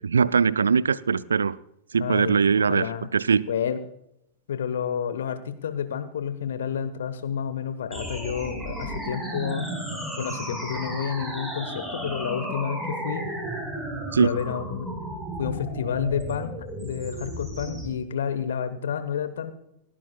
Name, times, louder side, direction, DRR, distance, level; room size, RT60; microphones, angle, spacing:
voice 1, 0.0-1.6 1.9-3.5 14.1-14.3, right 6 dB, 70° right, 21 dB, 0.4 m, -21 dB
voice 2, 2.0-3.1 3.5-3.8 4.5-9.7 10.2-13.3 14.2-14.9 15.4-19.5, left 8 dB, 65° left, 11 dB, 1.3 m, -30 dB
sound 1, 7.9-17.9, right 1 dB, 5° right, 4.7 m, -34 dB
29.5 x 11.5 x 2.3 m, 0.77 s
figure-of-eight pair, 90°, 0 cm